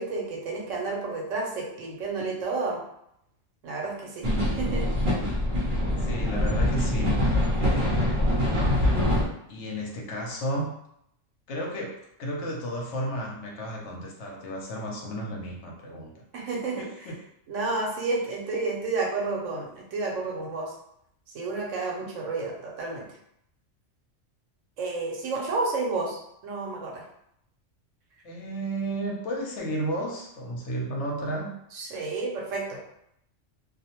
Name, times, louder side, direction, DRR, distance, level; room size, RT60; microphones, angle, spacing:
voice 1, 0.0-2.8 3.6-4.9 16.3-16.8 17.5-20.7 21.3-23.1 24.8-26.2 26.4-27.0 31.7-32.8, right 3 dB, 85° right, -2 dB, 1.1 m, -31 dB
sound 1, 4.2-9.2, left 1 dB, 50° right, 0.7 m, -24 dB
voice 2, 6.0-8.3 9.5-10.7 11.5-16.2 16.8-17.2 28.2-31.5, right 1 dB, 70° left, -1 dB, 0.9 m, -33 dB
2.4 x 2.1 x 2.8 m, 0.75 s
omnidirectional pair, 1.3 m